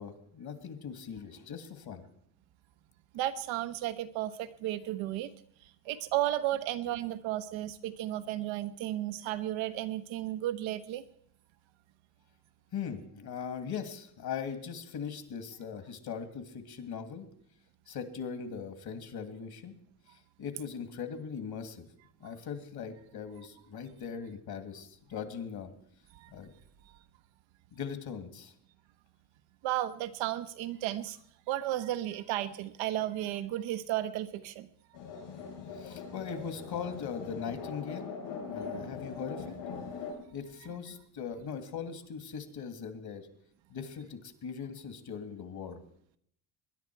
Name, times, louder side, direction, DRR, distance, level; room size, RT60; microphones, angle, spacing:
voice 1, 0.0-2.0 12.7-17.3 17.9-19.7 20.4-21.8 22.2-25.7 26.3-26.5 27.7-28.5 35.7-38.1 38.5-39.5 40.3-43.3 43.7-45.8, left 6 dB, 55° left, 8 dB, 2.3 m, -40 dB
voice 2, 3.1-5.3 5.8-11.0 26.1-26.3 29.6-31.2 31.5-34.7, right 13 dB, 80° right, 11 dB, 1.1 m, -33 dB
sound 1, 34.9-40.1, left 5 dB, 70° left, 7.2 m, -41 dB
21.0 x 10.5 x 4.6 m, 0.69 s
supercardioid pair, 85°, 46 cm